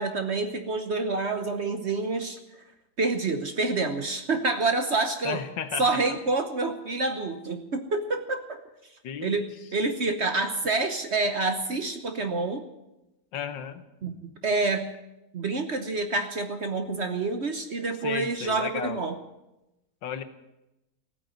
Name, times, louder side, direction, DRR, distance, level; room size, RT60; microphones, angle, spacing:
voice 1, 0.0-2.4 3.0-5.4 5.8-8.6 9.2-9.4 9.7-12.7 14.0-14.9 15.3-19.2, right 3 dB, 45° right, 8 dB, 1.1 m, -27 dB
voice 2, 5.2-6.2 9.0-9.4 13.3-13.8 18.0-19.0 20.0-20.2, left 8 dB, 80° left, 10 dB, 1.8 m, -34 dB
15.5 x 9.2 x 9.1 m, 0.95 s
omnidirectional pair, 2.0 m